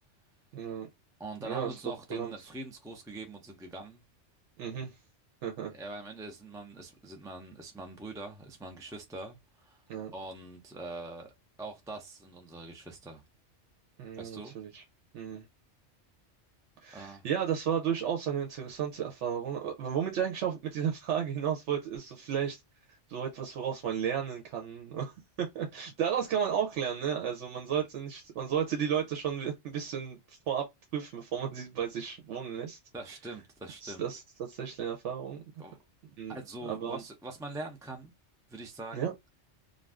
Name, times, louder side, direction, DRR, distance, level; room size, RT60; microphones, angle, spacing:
voice 1, 0.5-0.9 1.4-1.8 2.1-2.3 4.6-4.9 5.4-5.7 9.9-10.1 14.0-14.8 15.1-15.4 16.8-22.6 23.1-25.1 25.4-30.7 30.9-32.8 33.8-35.4 36.2-36.4 36.6-37.0 38.9-39.1, right 8 dB, 80° right, 1.0 m, -33 dB
voice 2, 1.2-4.0 5.7-9.8 10.1-11.3 11.6-13.2 14.2-14.5 16.9-17.3 32.9-34.0 35.6-35.8 36.3-38.1 38.5-39.1, right 2 dB, 5° right, 0.3 m, -43 dB
2.5 x 2.2 x 3.3 m
omnidirectional pair, 1.2 m